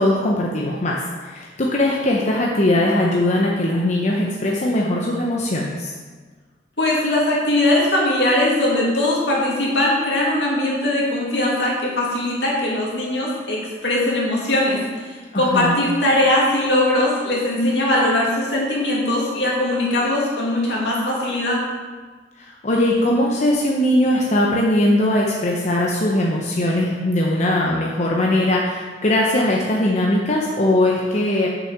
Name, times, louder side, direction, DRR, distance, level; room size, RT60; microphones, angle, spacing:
voice 1, 0.0-5.9 15.3-15.8 22.4-31.5, left 1 dB, 40° left, -2 dB, 0.8 m, -20 dB
voice 2, 6.8-21.6, left 1 dB, 75° left, -4 dB, 2.5 m, -20 dB
7.0 x 5.7 x 6.5 m, 1.4 s
head